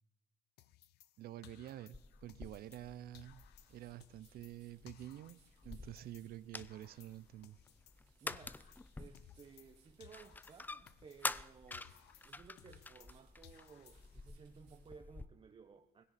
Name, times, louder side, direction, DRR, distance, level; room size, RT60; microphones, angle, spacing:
sound 1, 0.6-2.9 3.1-6.3 6.6-9.7 10.0-13.2 13.4-14.3, left 13 dB, 75° left, 0.8 m, -62 dB
voice 1, 1.2-3.4 3.7-7.6, right 13 dB, 65° right, 17 dB, 0.6 m, -49 dB
sound 2, 1.9-15.3, left 2 dB, 10° left, 0.4 m, -49 dB
sound 3, 2.4-15.0, right 9 dB, 80° right, 2.9 m, -74 dB
voice 2, 8.2-8.6 9.0-11.9 12.2-16.0, right 5 dB, 30° right, 6 dB, 0.9 m, -58 dB
18.0 x 16.5 x 4.2 m, 0.95 s
cardioid pair, 110°, 17 cm